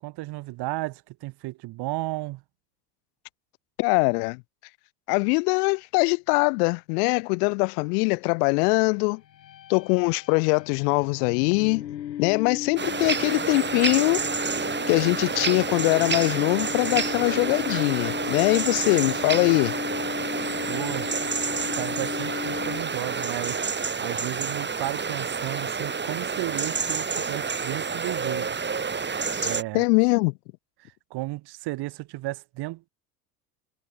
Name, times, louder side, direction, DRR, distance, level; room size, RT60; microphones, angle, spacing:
voice 1, 0.0-2.4 20.7-21.1 21.7-28.6 29.4-29.8 30.8-32.9, right 19 dB, 50° right, 2.3 m, -34 dB
voice 2, 3.8-4.4 5.1-9.2 9.7-11.8 12.2-14.2 14.9-19.7 29.4-30.3, left 33 dB, 65° left, 3.0 m, -22 dB
sound 1, 9.2-23.2, left 11 dB, 85° left, 7.8 m, -36 dB
sound 2, 12.8-29.6, right 5 dB, 20° right, 5.4 m, -29 dB
hypercardioid pair, 85°, 49 cm